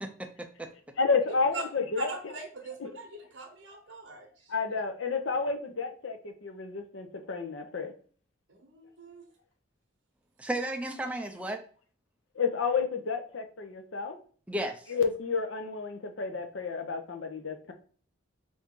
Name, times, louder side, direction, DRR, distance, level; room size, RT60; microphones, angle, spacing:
voice 1, 0.0-0.7 10.4-11.6 14.5-14.9, right 1 dB, 5° right, 4 dB, 0.4 m, -34 dB
voice 2, 1.0-2.1 4.5-6.2 6.4-7.9 12.4-14.2 14.9-17.7, left 4 dB, 85° left, 5 dB, 0.7 m, -30 dB
voice 3, 1.5-4.7 8.5-9.3, right 4 dB, 70° right, 3 dB, 0.7 m, -42 dB
4.5 x 2.7 x 3.7 m, 0.43 s
head